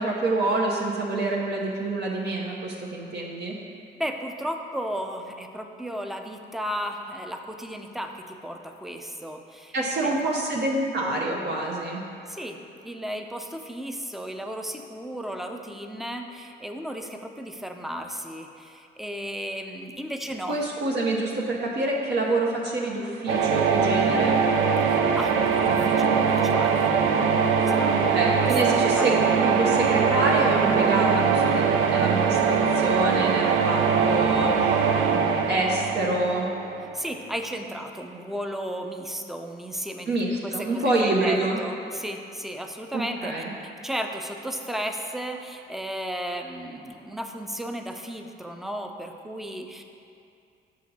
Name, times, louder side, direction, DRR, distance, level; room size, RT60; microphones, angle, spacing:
voice 1, 0.0-3.5 9.7-12.0 20.5-24.3 27.9-29.2 29.4-34.8 35.1-36.5 40.1-41.6 42.9-43.5, right 2 dB, 60° right, -2 dB, 0.9 m, -27 dB
voice 2, 3.9-9.7 10.0-10.2 12.3-12.6 12.8-20.6 24.8-28.0 28.2-29.1 36.9-40.2 40.4-43.3 43.6-49.8, equal, ahead, 4 dB, 0.5 m, -34 dB
sound 1, 23.3-37.1, right 6 dB, 90° right, 0.5 m, -22 dB
6.4 x 5.7 x 4.1 m, 2.5 s
cardioid pair, 90°, 20 cm